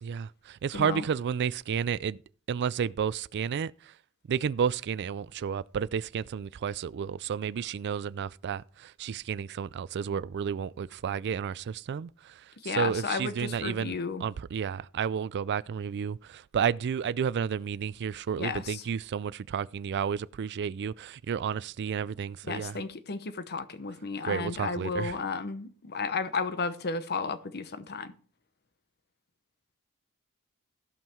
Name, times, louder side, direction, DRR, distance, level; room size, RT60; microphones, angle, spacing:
voice 1, 0.0-2.2 2.5-3.9 4.3-22.8 24.2-25.2, right 7 dB, 50° right, 0.3 m, -31 dB
voice 2, 0.7-1.0 12.6-14.2 18.4-18.8 22.4-28.1, left 4 dB, 50° left, 0.9 m, -33 dB
15.0 x 5.6 x 4.5 m
head